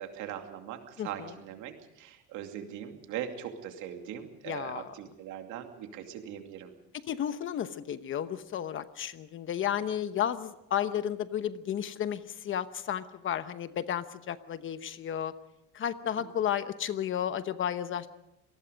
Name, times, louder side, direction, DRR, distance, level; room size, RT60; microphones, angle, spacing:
voice 1, 0.0-6.7 16.2-16.3, right 10 dB, 80° right, 5 dB, 2.6 m, -40 dB
voice 2, 1.0-1.3 4.5-4.9 7.1-15.3 15.7-18.1, left 9 dB, 40° left, 12 dB, 1.0 m, -33 dB
27.0 x 19.0 x 5.2 m, 0.87 s
cardioid pair, 150°, 30 cm